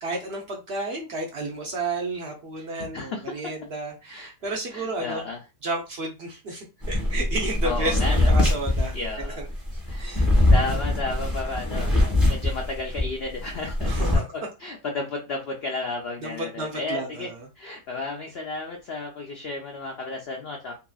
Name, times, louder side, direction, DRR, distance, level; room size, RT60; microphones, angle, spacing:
voice 1, 0.0-5.2 5.6-9.0 9.2-9.5 9.7-10.3 13.8-14.2 16.2-17.5, right 2 dB, 70° right, 0 dB, 0.6 m, -32 dB
voice 2, 2.6-3.2 4.1-4.3 4.7-5.4 7.6-8.3 8.9-9.5 9.8-11.9 12.3-14.2 14.6-17.3 17.6-20.7, left 3 dB, 90° left, 1 dB, 0.5 m, -33 dB
sound 1, 6.8-13.1 13.4-14.2, left 1 dB, ahead, 0.9 m, -22 dB
2.8 x 2.7 x 2.3 m, 0.28 s
omnidirectional pair, 1.7 m